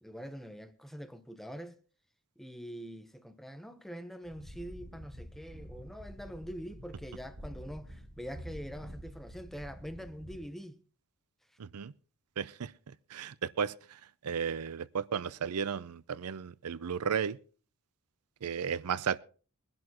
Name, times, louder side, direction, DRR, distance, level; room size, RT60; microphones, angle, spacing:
voice 1, 0.0-1.8 2.4-10.8, equal, ahead, 0.8 m, -44 dB
sound 1, 4.2-10.4, equal, 45° right, 7.2 m, -48 dB
voice 2, 11.6-11.9 12.4-17.4 18.4-19.2, right 7 dB, 85° right, 0.5 m, -34 dB
22.5 x 11.0 x 2.9 m
head